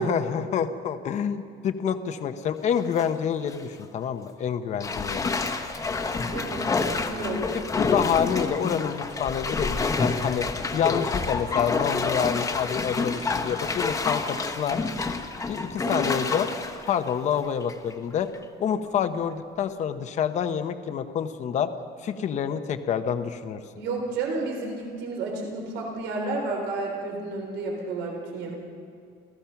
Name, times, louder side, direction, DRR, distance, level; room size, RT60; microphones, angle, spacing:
voice 1, 0.0-5.3 7.8-10.5 10.7-14.8 15.5-16.5 16.9-18.3 18.6-21.7 22.0-23.6, left 8 dB, 40° left, 9 dB, 0.9 m, -27 dB
Bathtub (filling or washing), 2.6-3.1 3.5-3.6 4.8-17.9 18.3-18.4, left 4 dB, 15° left, 1.1 m, -28 dB
voice 2, 6.3-7.6 15.8-16.2 23.8-28.5, right 3 dB, 85° right, 1 dB, 3.9 m, -31 dB
29.5 x 15.0 x 5.9 m, 2.4 s
cardioid pair, 180°, 18 cm